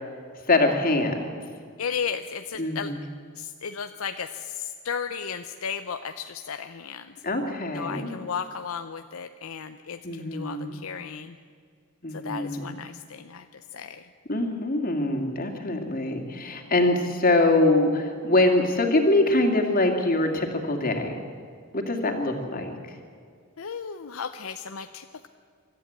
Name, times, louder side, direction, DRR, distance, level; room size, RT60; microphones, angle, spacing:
voice 1, 0.5-1.4 2.6-3.0 7.2-8.1 10.0-10.8 12.0-12.7 14.3-21.2 21.7-23.0, left 2 dB, 40° left, 3 dB, 2.5 m, -24 dB
voice 2, 1.8-2.9 3.4-7.1 7.7-11.4 12.1-14.0 23.6-25.3, left 6 dB, 70° left, 9 dB, 0.7 m, -35 dB
25.0 x 13.0 x 8.8 m, 2.2 s
head